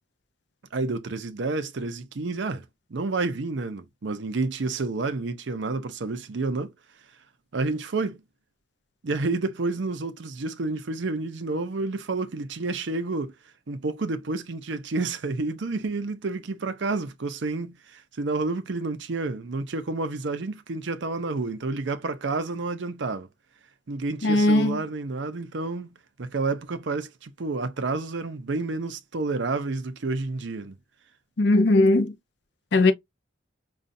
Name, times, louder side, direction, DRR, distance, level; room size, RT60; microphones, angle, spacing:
voice 1, 0.7-2.6 2.9-6.7 7.5-8.2 9.0-13.3 13.7-23.3 23.9-25.9 26.2-30.7, right 3 dB, 65° right, 0.6 m, -29 dB
voice 2, 24.2-24.8 31.4-32.1 32.7-32.9, left 2 dB, 55° left, 0.6 m, -19 dB
5.2 x 2.4 x 2.6 m
head